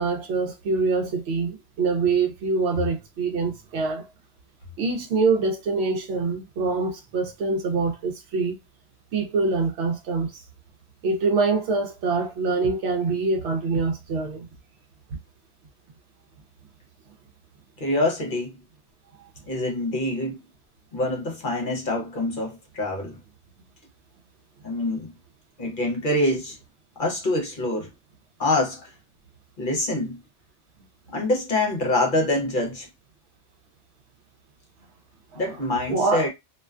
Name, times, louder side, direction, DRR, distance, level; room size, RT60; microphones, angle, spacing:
voice 1, 0.0-4.1 4.8-8.6 9.1-10.4 11.0-14.5 35.3-35.4 35.9-36.3, right 4 dB, 70° right, 0.8 m, -25 dB
voice 2, 17.8-18.5 19.5-20.4 20.9-23.2 24.6-25.1 25.6-26.6 27.0-27.9 28.4-28.9 29.6-30.2 31.1-32.9 35.4-36.3, left 1 dB, 50° left, 0.8 m, -25 dB
2.4 x 2.2 x 2.3 m
omnidirectional pair, 1.2 m